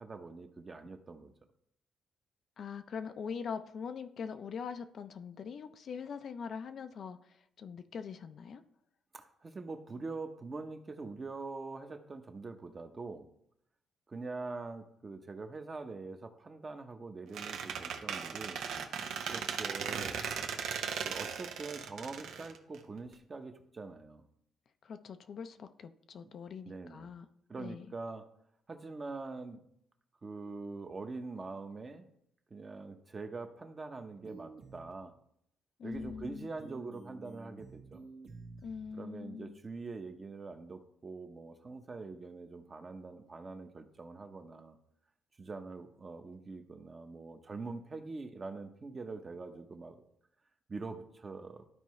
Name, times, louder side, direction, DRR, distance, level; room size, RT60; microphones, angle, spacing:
voice 1, 0.0-1.3 9.1-13.3 14.1-18.7 19.3-20.2 21.0-24.3 26.2-26.3 26.6-27.1 27.5-28.3 28.7-29.6 30.2-32.1 32.5-35.1 35.8-38.1 38.9-44.8 45.4-50.0 50.7-51.6, right 3 dB, 30° right, 6 dB, 0.9 m, -44 dB
voice 2, 2.6-8.6 24.8-27.3 27.6-27.9 35.8-36.5 38.6-39.6, left 6 dB, 60° left, 9 dB, 0.5 m, -42 dB
Squeak, 17.3-23.1, right 7 dB, 80° right, 0.8 m, -38 dB
sound 1, 34.2-34.9 35.9-36.3 36.6-38.9, right 3 dB, 65° right, 1.5 m, -51 dB
12.5 x 4.6 x 3.2 m, 0.73 s
cardioid pair, 90°, 0 cm